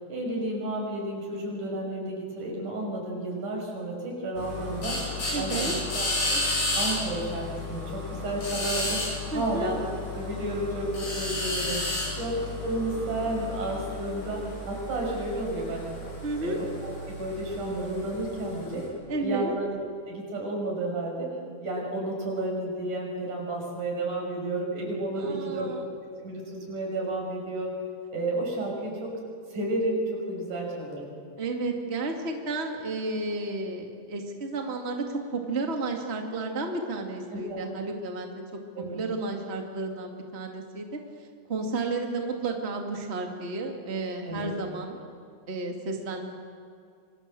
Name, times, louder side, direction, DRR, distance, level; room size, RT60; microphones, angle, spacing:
voice 1, 0.1-5.0 5.4-6.4 6.8-9.0 9.3-9.8 10.1-11.8 12.2-15.8 16.4-18.9 19.2-19.7 20.1-21.3 21.6-25.7 26.2-27.7 28.1-29.1 29.5-31.1 37.3-37.6 38.8-39.0 44.2-44.5, right 2 dB, 80° right, 0 dB, 7.5 m, -31 dB
sound 1, 4.4-18.9, left 2 dB, 85° left, 8.7 m, -33 dB
voice 2, 5.3-5.7 9.3-9.7 16.2-16.6 19.1-19.5 25.2-25.9 31.4-38.5 38.9-41.0 41.5-45.0 45.5-46.3, right 3 dB, 20° right, 3 dB, 2.2 m, -32 dB
27.0 x 25.0 x 7.7 m, 2.3 s
omnidirectional pair, 3.6 m